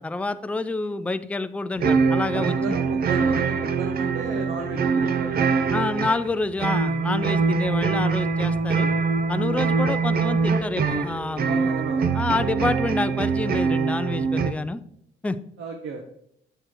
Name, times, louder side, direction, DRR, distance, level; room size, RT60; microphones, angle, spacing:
voice 1, 0.0-2.8 5.7-8.9 9.3-11.7 12.1-14.8 15.2-15.4, left 3 dB, 5° left, 12 dB, 0.3 m, -28 dB
sound 1, 1.8-14.5, right 5 dB, 50° right, 0.6 m, -23 dB
voice 2, 2.3-5.5 9.6-9.9 11.4-12.4 15.6-16.0, right 3 dB, 75° right, 3 dB, 1.0 m, -34 dB
7.8 x 6.4 x 3.1 m, 0.72 s
cardioid pair, 90°, 20 cm